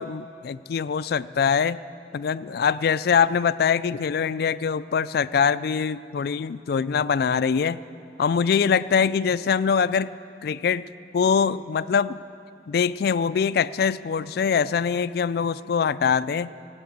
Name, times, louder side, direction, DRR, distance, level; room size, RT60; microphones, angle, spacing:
voice 1, 0.0-1.8 2.1-7.8 8.2-10.1 10.4-10.9 11.1-12.2 12.7-16.5, left 6 dB, 60° left, 16 dB, 0.3 m, -23 dB
17.5 x 8.6 x 8.4 m, 2.6 s
head